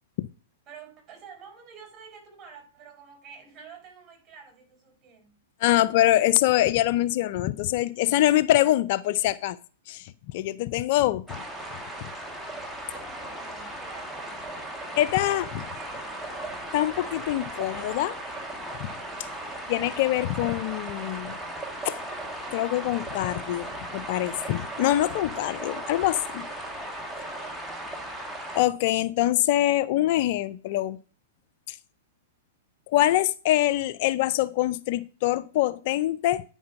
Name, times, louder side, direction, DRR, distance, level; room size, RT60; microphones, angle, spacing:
voice 1, 0.7-5.4 12.9-16.2 27.4-28.1, right 6 dB, 25° right, 4.8 m, -49 dB
voice 2, 5.6-9.6 9.9-11.4 15.0-15.5 16.7-18.2 18.8-18.9 19.7-21.3 21.8-22.0 22.5-26.4 28.5-31.0 31.7-31.8 32.9-36.4, left 14 dB, 55° left, 0.5 m, -24 dB
sound 1, 11.3-28.6, right 1 dB, ahead, 1.8 m, -37 dB
9.5 x 5.5 x 5.8 m
hypercardioid pair, 120°, 0 cm